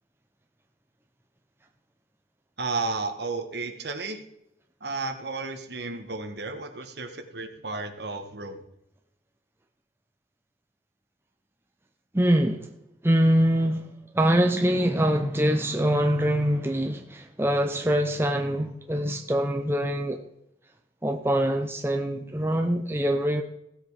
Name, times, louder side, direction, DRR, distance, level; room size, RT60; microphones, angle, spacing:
voice 1, 2.6-4.2 4.8-8.6, right 3 dB, 60° right, 7 dB, 1.5 m, -33 dB
voice 2, 12.1-12.7 13.0-13.9 14.1-20.2 21.0-23.4, equal, 15° right, 4 dB, 0.7 m, -24 dB
15.5 x 7.9 x 4.9 m, 0.82 s
head